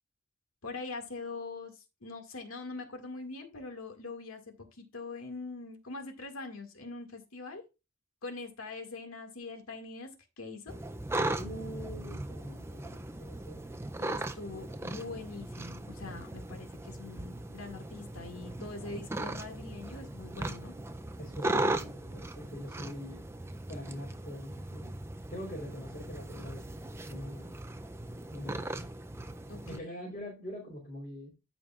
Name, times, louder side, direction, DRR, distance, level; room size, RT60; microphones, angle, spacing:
voice 1, 0.6-7.6 8.2-10.7 14.0-20.7 29.5-30.1, left 3 dB, 85° left, 2.0 m, -43 dB
sound 1, 10.7-29.8, right 2 dB, 10° right, 0.4 m, -38 dB
voice 2, 11.4-13.6 21.2-23.2 23.7-24.9 25.3-27.5 28.3-28.9 29.7-31.3, equal, 35° left, 3.2 m, -44 dB
13.5 x 5.1 x 2.4 m
head